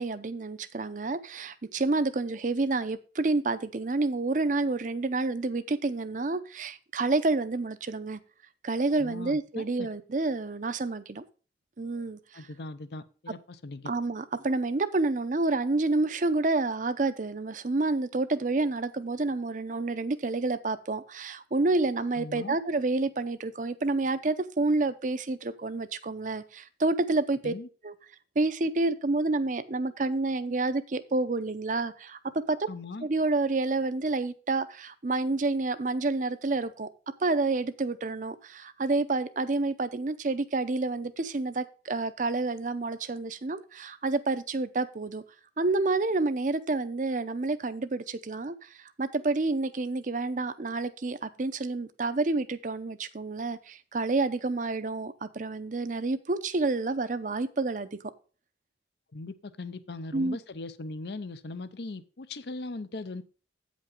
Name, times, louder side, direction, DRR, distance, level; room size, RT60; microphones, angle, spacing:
voice 1, 0.0-8.2 8.6-11.2 11.8-12.4 13.9-27.5 27.8-27.9 28.4-32.6 33.0-36.9 37.2-45.2 45.6-58.0 60.1-60.4, right 3 dB, 45° right, 0.6 m, -29 dB
voice 2, 9.0-9.9 12.3-13.9 22.1-22.6 27.4-27.7 32.7-33.1 59.1-63.2, left 2 dB, 70° left, 0.7 m, -39 dB
8.7 x 5.2 x 5.2 m
head